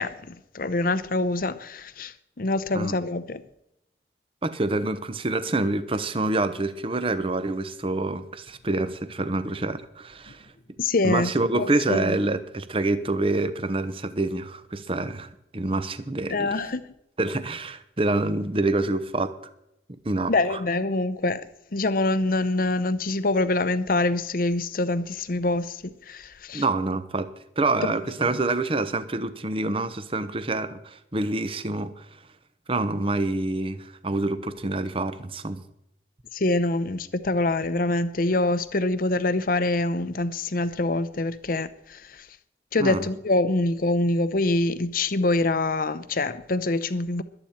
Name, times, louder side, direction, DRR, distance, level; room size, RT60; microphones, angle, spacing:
voice 1, 0.0-3.4 10.8-11.3 11.6-12.2 16.3-16.8 20.3-21.4 21.7-26.6 36.3-42.3 42.7-47.2, left 2 dB, 55° left, 0.7 m, -25 dB
voice 2, 4.4-10.5 11.0-16.6 17.2-19.3 20.0-20.6 26.5-32.2 32.7-35.6 42.8-43.1, right 2 dB, 30° right, 0.9 m, -27 dB
22.0 x 8.9 x 4.4 m
head